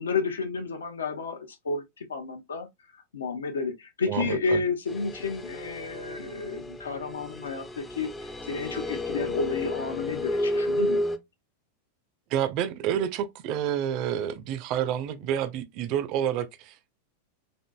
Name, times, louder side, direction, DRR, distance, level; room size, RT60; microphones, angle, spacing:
voice 1, 0.0-2.7 3.1-11.0, left 4 dB, 70° left, 0.6 m, -31 dB
voice 2, 4.1-4.6 12.3-16.9, right 10 dB, 40° right, 0.5 m, -29 dB
sound 1, 4.9-11.2, left 1 dB, 15° left, 0.5 m, -32 dB
4.4 x 2.6 x 2.2 m
figure-of-eight pair, 90°, 0 cm